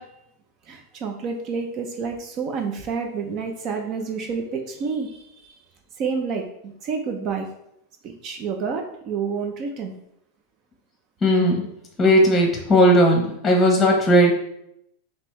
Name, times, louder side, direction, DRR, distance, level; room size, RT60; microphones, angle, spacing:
voice 1, 0.7-5.5 6.0-7.5 8.0-9.9, right 5 dB, 40° right, 4 dB, 0.6 m, -29 dB
voice 2, 11.2-11.6 12.0-14.3, equal, 15° left, 1 dB, 0.9 m, -17 dB
5.2 x 3.0 x 3.2 m, 0.76 s
supercardioid pair, 135°, 0 cm